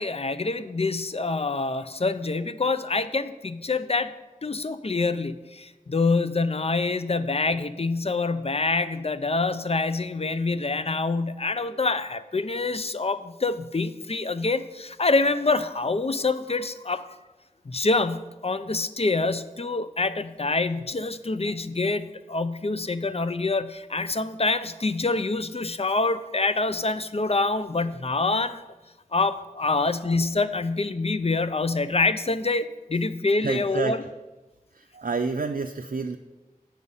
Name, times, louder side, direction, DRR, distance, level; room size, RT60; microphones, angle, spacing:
voice 1, 0.0-4.1 4.4-17.1 17.7-28.6 29.1-34.0, left 3 dB, 45° left, 13 dB, 0.5 m, -26 dB
voice 2, 33.4-34.0 34.8-36.2, right 4 dB, 75° right, 4 dB, 0.4 m, -29 dB
8.0 x 6.2 x 5.5 m, 1.1 s
wide cardioid pair, 45°, 15 cm